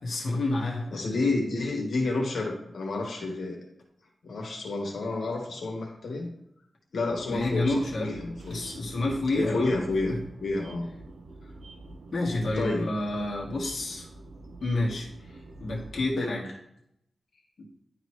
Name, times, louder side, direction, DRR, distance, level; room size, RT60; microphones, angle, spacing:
voice 1, 0.0-1.0 7.3-8.1 8.5-9.8 10.1-10.2 12.1-14.1 14.6-15.1 15.6-16.4, left 2 dB, 65° left, -4 dB, 1.4 m, -29 dB
voice 2, 0.9-3.6 4.2-6.3 6.9-8.7 9.3-10.1 10.4-10.9 11.4-11.5 12.6-12.9 15.3-15.4 16.2-16.3, left 3 dB, 80° left, 1 dB, 1.5 m, -30 dB
sound 1, 7.1-16.2, right 2 dB, 75° right, 0.8 m, -46 dB
10.5 x 4.0 x 3.1 m, 0.76 s
wide cardioid pair, 85°, 0 cm